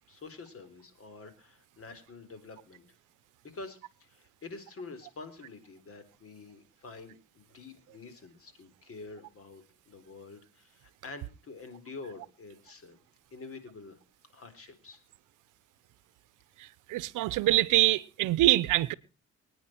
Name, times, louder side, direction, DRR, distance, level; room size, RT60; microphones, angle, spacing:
voice 1, 0.1-2.9 3.4-13.0 13.3-14.0 14.3-15.0, left 3 dB, 50° left, 3.9 m, -47 dB
voice 2, 16.6-18.9, right 17 dB, 90° right, 0.7 m, -25 dB
24.0 x 9.7 x 4.4 m
cardioid pair, 90°, 30 cm